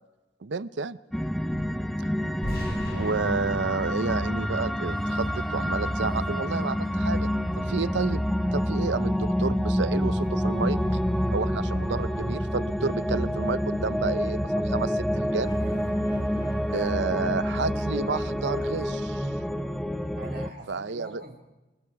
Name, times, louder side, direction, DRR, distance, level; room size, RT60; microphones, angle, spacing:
voice 1, 0.4-1.0 2.9-7.3 7.7-8.2 8.5-10.8 11.3-15.6 16.7-19.3 20.7-21.2, right 4 dB, 85° right, 16 dB, 0.7 m, -30 dB
sound 1, 1.1-20.5, equal, ahead, 0.7 m, -28 dB
voice 2, 1.4-1.7 11.8-12.1 15.6-16.0 20.1-21.4, right 1 dB, 60° right, 2 dB, 5.0 m, -43 dB
sound 2, 2.4-5.4, left 1 dB, 60° left, 4.8 m, -38 dB
sound 3, 4.8-17.3, right 1 dB, 25° left, 3.2 m, -42 dB
28.5 x 20.0 x 4.8 m, 1.1 s
head